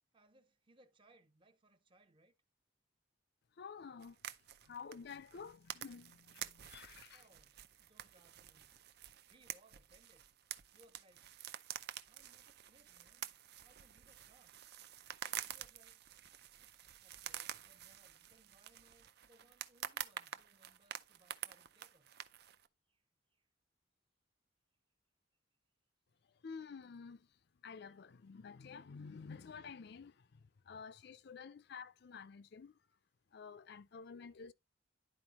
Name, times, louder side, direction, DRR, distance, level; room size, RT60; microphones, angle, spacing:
voice 1, 0.1-2.4 7.1-8.7 9.3-10.3 10.7-11.3 12.1-13.3 13.6-14.6 15.3-16.0 17.0-22.1 22.9-23.0 23.3-23.5, right 1 dB, 30° right, 0.7 m, -69 dB
voice 2, 3.6-4.2 4.6-7.3 26.4-27.4 27.6-32.8 33.3-34.5, left 5 dB, 60° left, 0.5 m, -51 dB
sound 1, 4.0-22.7, right 10 dB, 60° right, 0.5 m, -49 dB
10.5 x 4.5 x 2.9 m
head